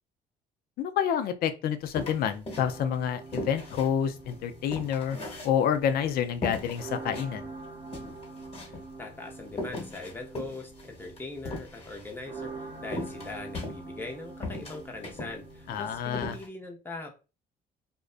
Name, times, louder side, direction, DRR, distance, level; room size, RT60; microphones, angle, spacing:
voice 1, 0.8-5.2 5.4-7.5 15.7-16.4, left 8 dB, 65° left, 0.4 m, -28 dB
sound 1, 1.9-3.0 3.3-5.9 6.4-7.3 7.6-7.7 7.9-8.9 9.5-12.1 12.9-14.1 14.4-15.4 15.7-15.8 16.1-16.5, left 2 dB, 35° left, 1.2 m, -38 dB
sound 2, 2.5-16.0, right 3 dB, 80° right, 0.7 m, -45 dB
voice 2, 8.6-17.1, left 3 dB, 10° left, 0.7 m, -41 dB
2.5 x 2.1 x 2.4 m
cardioid pair, 110°, 17 cm